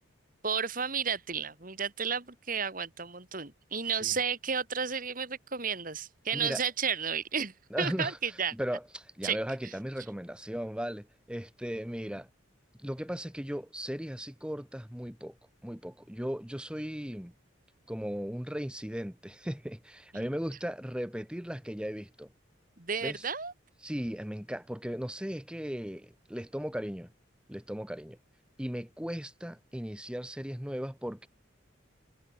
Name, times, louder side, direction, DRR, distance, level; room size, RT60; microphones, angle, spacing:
voice 1, 0.4-8.5 9.2-9.4 20.1-20.3 22.8-23.5, right 6 dB, 45° right, 2.3 m, -32 dB
voice 2, 7.7-12.3 12.8-15.3 15.6-17.3 17.9-22.3 23.0-23.3 23.8-27.1 27.5-28.2 28.6-31.3, equal, 5° right, 1.1 m, -37 dB
head